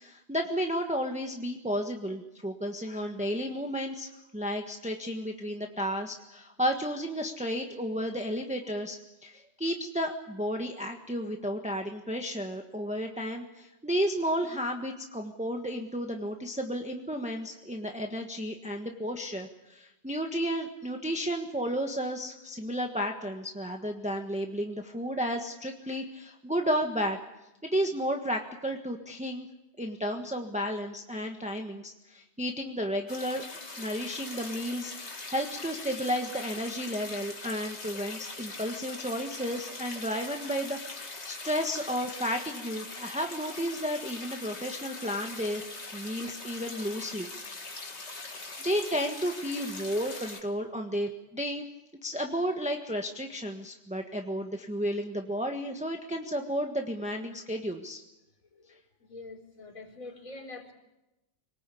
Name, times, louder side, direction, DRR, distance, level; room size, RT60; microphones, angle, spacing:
voice 1, 0.0-9.0 9.2-27.2 27.6-29.5 29.8-33.4 33.8-40.8 41.3-45.6 45.9-47.3 48.6-51.6 52.0-58.0, equal, 5° right, 3 dB, 1.4 m, -32 dB
sound 1, 33.1-50.4, left 3 dB, 55° left, 2.5 m, -42 dB
voice 2, 59.1-60.7, left 2 dB, 85° left, 1 dB, 4.7 m, -44 dB
26.0 x 19.5 x 8.5 m, 0.97 s
omnidirectional pair, 1.4 m